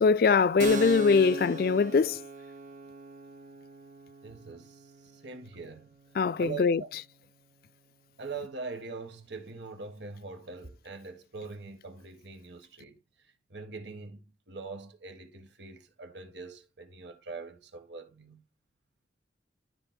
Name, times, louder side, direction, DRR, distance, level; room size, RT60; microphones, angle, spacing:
voice 1, 0.0-2.2 6.2-6.8, left 5 dB, 55° left, 0.3 m, -22 dB
Keyboard (musical), 0.6-7.9, right 2 dB, 45° right, 0.6 m, -40 dB
voice 2, 4.2-4.8 5.1-5.9 6.4-6.9 8.2-13.0 13.5-18.4, right 4 dB, 75° right, 1.5 m, -42 dB
13.0 x 4.6 x 2.3 m
head